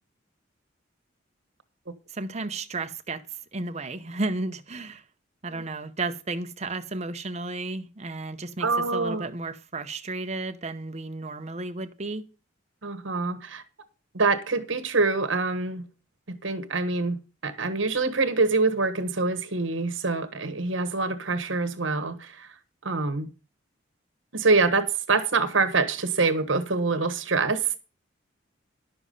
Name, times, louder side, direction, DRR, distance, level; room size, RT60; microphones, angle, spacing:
voice 1, 2.1-3.2 3.5-5.0 5.4-12.3, right 2 dB, 35° right, 0.8 m, -33 dB
voice 2, 8.6-9.3 12.8-13.6 14.1-15.8 16.3-22.5 22.8-23.3 24.3-27.8, right 3 dB, 75° right, 1.4 m, -25 dB
11.0 x 7.0 x 5.4 m
head